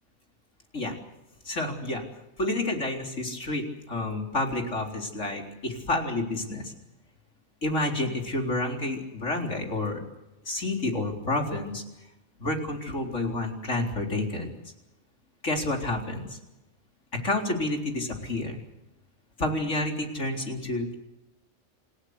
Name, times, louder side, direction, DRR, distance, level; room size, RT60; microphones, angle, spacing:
voice 1, 1.5-2.0 2.4-6.7 7.6-10.0 10.5-11.8 12.4-14.5 15.4-16.4 17.2-18.6 19.4-20.9, left 2 dB, 75° left, 3 dB, 4.4 m, -29 dB
28.0 x 16.0 x 8.1 m, 0.95 s
omnidirectional pair, 1.3 m